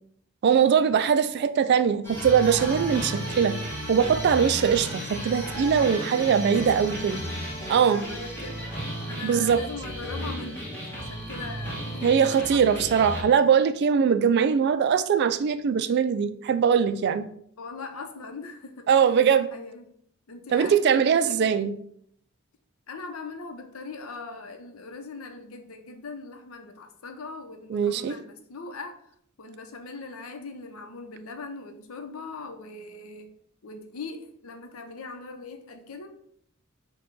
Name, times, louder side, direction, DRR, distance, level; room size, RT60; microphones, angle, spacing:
voice 1, 0.4-3.6 3.9-7.2 7.7-8.1 9.2-9.6 12.0-17.3 18.9-19.5 20.5-21.7 27.7-28.1, right 7 dB, 50° right, 11 dB, 0.3 m, -21 dB
sound 1, 2.0-13.2, right 1 dB, 10° left, 1.4 m, -34 dB
voice 2, 6.5-6.9 7.6-8.7 9.1-10.7 10.9-13.0 17.6-19.1 19.5-19.8 20.3-21.6 22.9-29.0 29.4-33.3 33.6-36.1, left 3 dB, 80° left, 5 dB, 0.7 m, -40 dB
4.9 x 2.3 x 4.6 m, 0.67 s
head